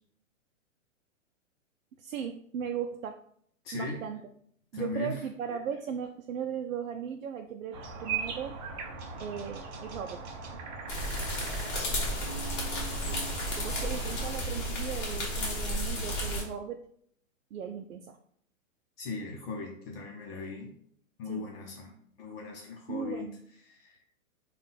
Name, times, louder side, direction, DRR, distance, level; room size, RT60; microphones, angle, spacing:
voice 1, 2.0-3.2 3.7-4.2 4.7-8.6 9.2-10.2 13.0-13.2 13.5-16.8 17.5-18.2 21.3-21.5 22.9-23.4, right 8 dB, 75° right, 4 dB, 0.5 m, -37 dB
voice 2, 3.6-4.1 4.7-5.2 11.7-12.2 19.0-20.7 21.2-23.3 23.7-24.0, left 3 dB, 45° left, 0 dB, 0.9 m, -38 dB
sound 1, 7.7-14.3, right 5 dB, 30° right, 0.7 m, -40 dB
sound 2, 10.9-16.4, equal, 25° left, 1.3 m, -33 dB
Keyboard (musical), 12.2-14.8, right 6 dB, 5° left, 0.7 m, -48 dB
3.7 x 2.5 x 4.0 m, 0.66 s
hypercardioid pair, 140°, 40 cm